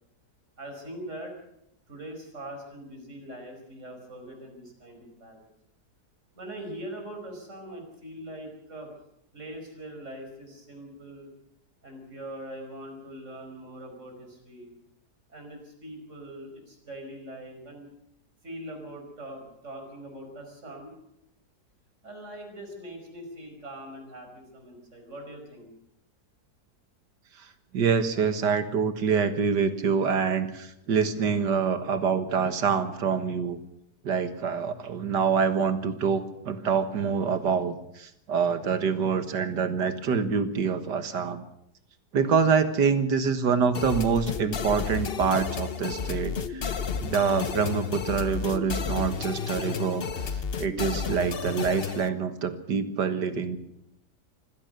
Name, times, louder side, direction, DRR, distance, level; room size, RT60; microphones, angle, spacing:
voice 1, 0.6-1.3 1.9-5.5 6.3-8.9 9.3-11.3 11.8-14.7 15.3-17.9 18.4-21.0 22.0-25.7, right 1 dB, 45° right, 3 dB, 5.4 m, -42 dB
voice 2, 27.7-33.6 34.0-41.4 42.1-46.7 47.0-50.1 50.3-53.6, right 6 dB, 85° right, 10 dB, 2.1 m, -26 dB
sound 1, 43.7-52.1, left 6 dB, 45° left, 0.9 m, -32 dB
25.5 x 16.5 x 6.7 m, 0.77 s
omnidirectional pair, 1.8 m